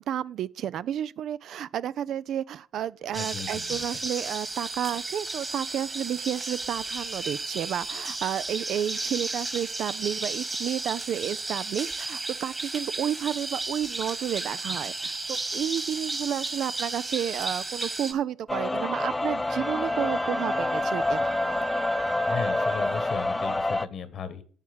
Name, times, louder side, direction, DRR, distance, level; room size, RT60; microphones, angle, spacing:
voice 1, 0.0-21.3, right 10 dB, 65° right, 0.3 m, -31 dB
voice 2, 3.1-3.8 22.2-24.4, left 6 dB, 60° left, 1.2 m, -36 dB
sound 1, 3.1-18.1, right 2 dB, 25° right, 1.7 m, -33 dB
sound 2, 18.5-23.9, left 2 dB, 15° left, 0.5 m, -27 dB
Wind instrument woodwind instrument, 19.5-23.2, right 4 dB, 45° right, 1.6 m, -37 dB
11.0 x 7.1 x 3.4 m
hypercardioid pair, 60°, 0 cm